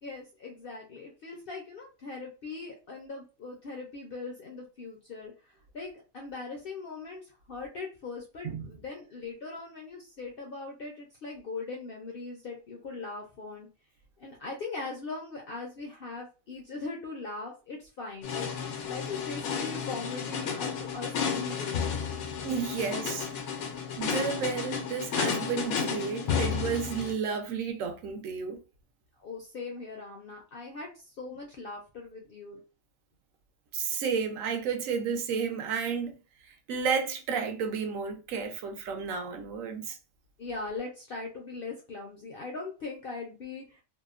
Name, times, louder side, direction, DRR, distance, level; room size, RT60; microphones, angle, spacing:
voice 1, 0.0-5.3 5.7-13.7 14.2-18.5 18.9-21.8 29.2-30.9 31.2-32.6 40.4-43.8, left 3 dB, 60° left, 0.6 m, -40 dB
sound 1, 18.2-27.1, left 7 dB, 90° left, 1.1 m, -32 dB
voice 2, 22.4-23.3 24.0-28.6 33.7-36.2 36.5-40.0, right 6 dB, 75° right, 0.9 m, -32 dB
2.8 x 2.0 x 2.4 m
omnidirectional pair, 1.5 m